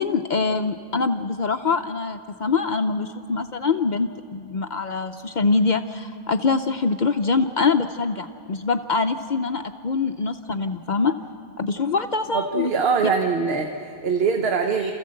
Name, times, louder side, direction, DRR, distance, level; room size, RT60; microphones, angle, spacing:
voice 1, 0.0-11.1 11.6-12.7, left 4 dB, 55° left, 7 dB, 0.7 m, -24 dB
voice 2, 12.3-14.9, right 5 dB, 75° right, 4 dB, 1.3 m, -23 dB
28.0 x 14.5 x 7.7 m, 2.5 s
omnidirectional pair, 1.0 m